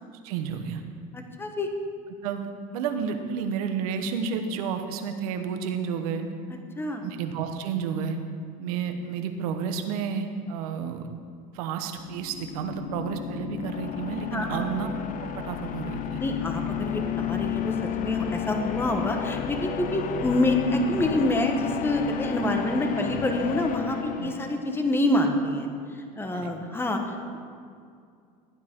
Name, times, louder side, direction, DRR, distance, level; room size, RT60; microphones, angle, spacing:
voice 1, 0.2-0.8 2.2-6.3 7.0-8.2 8.6-11.0 11.5-14.9 15.4-16.2 24.2-24.3 26.3-26.5, right 6 dB, 80° right, 6 dB, 1.2 m, -31 dB
voice 2, 1.1-1.7 6.5-7.0 14.3-14.6 16.2-25.7 26.2-27.0, left 1 dB, 10° left, 4 dB, 1.3 m, -27 dB
sound 1, 11.9-24.9, left 9 dB, 45° left, 0.7 m, -32 dB
16.0 x 9.6 x 3.7 m, 2.3 s
supercardioid pair, 105°, 19 cm